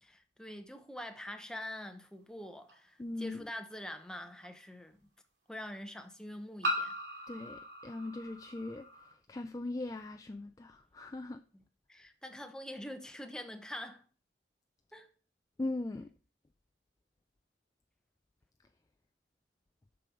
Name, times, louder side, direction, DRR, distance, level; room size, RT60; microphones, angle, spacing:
voice 1, 0.0-5.0 5.5-6.9 11.9-14.0 14.9-15.1, left 1 dB, 5° left, 0.8 m, -45 dB
sound 1, 2.7-2.8 4.4-4.5 6.6-9.1, equal, 80° right, 2.5 m, -38 dB
voice 2, 3.0-3.5 7.3-8.9 9.3-11.4 15.6-16.1, left 2 dB, 20° left, 0.4 m, -39 dB
8.2 x 6.1 x 4.9 m
head